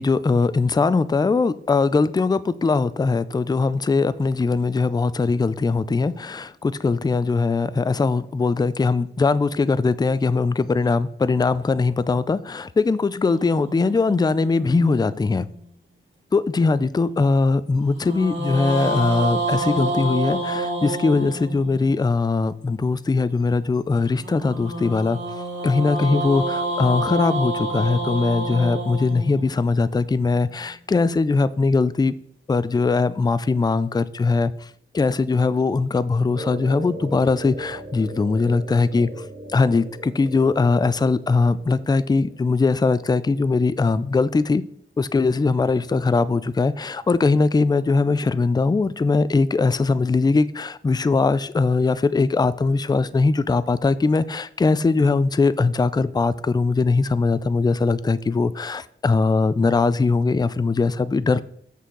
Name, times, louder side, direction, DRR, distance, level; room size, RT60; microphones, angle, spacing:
voice 1, 0.0-15.5 16.3-25.2 25.6-32.1 32.5-34.7 34.9-39.1 39.5-44.6 45.0-61.4, left 4 dB, 20° left, 0.4 m, -21 dB
sound 1, 13.2-15.7 17.9-22.1 24.2-30.4, right 1 dB, 60° right, 3.0 m, -28 dB
sound 2, 36.3-42.4, right 1 dB, 45° right, 1.5 m, -38 dB
8.3 x 6.4 x 3.8 m
wide cardioid pair, 115°, 21 cm